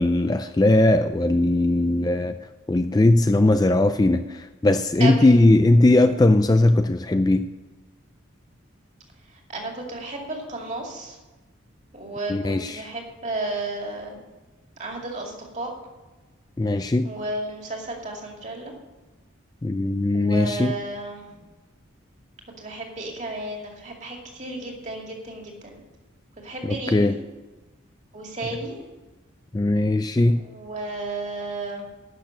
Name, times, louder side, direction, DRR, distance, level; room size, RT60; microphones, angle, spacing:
voice 1, 0.0-2.3 2.7-7.5 12.3-12.9 16.6-17.1 19.6-20.8 26.6-27.1 29.5-30.4, left 2 dB, 20° left, 9 dB, 0.3 m, -19 dB
voice 2, 5.0-5.4 6.0-6.2 9.5-11.2 11.9-14.2 14.8-15.7 17.0-18.7 20.1-21.4 22.6-25.8 26.4-27.1 28.1-28.8 30.4-31.8, right 2 dB, 35° right, 1 dB, 2.4 m, -33 dB
12.0 x 6.6 x 8.1 m, 1.2 s
head